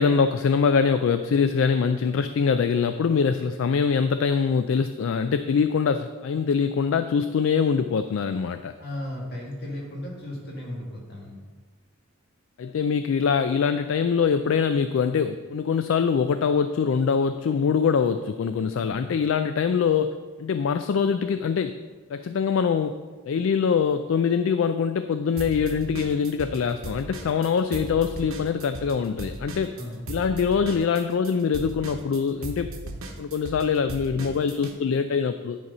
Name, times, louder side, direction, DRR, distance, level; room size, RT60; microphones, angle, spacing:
voice 1, 0.0-8.7 12.6-21.8 22.1-23.0 23.3-29.8 30.1-32.7 33.2-35.6, left 6 dB, 65° left, 10 dB, 0.3 m, -23 dB
voice 2, 8.8-11.4 18.7-19.0 29.7-30.1, left 1 dB, 50° left, -3 dB, 2.1 m, -35 dB
sound 1, 25.4-26.6 26.8-34.7, right 1 dB, 80° right, 1.0 m, -37 dB
10.5 x 4.1 x 5.4 m, 1.4 s
head